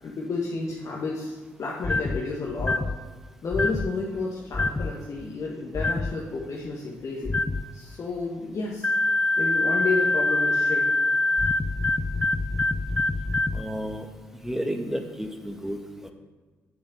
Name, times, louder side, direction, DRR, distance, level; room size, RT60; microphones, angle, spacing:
voice 1, 0.0-2.8 3.4-7.4 7.7-8.9 9.4-11.0, left 3 dB, 45° left, -3 dB, 1.7 m, -31 dB
sound 1, 1.8-2.2 2.6-3.0 3.5-3.9 4.5-4.9 5.7-6.1 7.2-7.6 8.8-13.6, left 2 dB, 20° left, 0.5 m, -24 dB
voice 2, 13.5-14.1 14.4-16.1, equal, 5° right, 4 dB, 1.6 m, -32 dB
9.8 x 7.0 x 6.8 m, 1.4 s
figure-of-eight pair, 40°, 7 cm